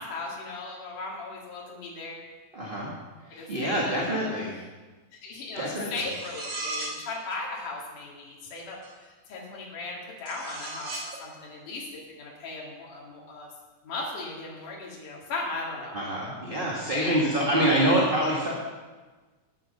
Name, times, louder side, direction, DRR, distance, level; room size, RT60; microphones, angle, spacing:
voice 1, 0.0-2.2 3.3-4.3 5.2-8.8 9.0-10.9 11.2-11.9 12.2-13.5 13.8-16.0 16.8-17.2, left 3 dB, 80° left, -3 dB, 3.7 m, -37 dB
voice 2, 2.5-2.9 3.3-4.5 5.5-5.9 15.9-18.5, right 1 dB, 25° right, -4 dB, 1.3 m, -26 dB
sound 1, 6.0-7.1 8.8-8.9 10.3-11.2, right 2 dB, 55° right, 3.7 m, -36 dB
10.0 x 9.9 x 6.7 m, 1.3 s
omnidirectional pair, 3.6 m